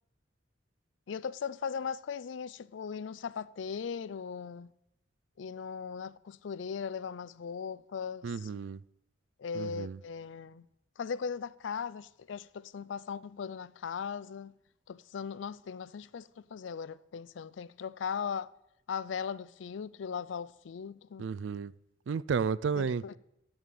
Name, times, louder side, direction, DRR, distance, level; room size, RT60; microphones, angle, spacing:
voice 1, 1.1-4.7 5.4-8.5 9.4-10.6 11.0-14.5 14.9-18.5 18.9-21.3 22.8-23.2, left 6 dB, 85° left, 0.4 m, -38 dB
voice 2, 8.2-8.8 9.5-10.0 21.2-21.7 22.1-23.0, right 6 dB, 80° right, 0.4 m, -32 dB
9.0 x 7.1 x 8.4 m
head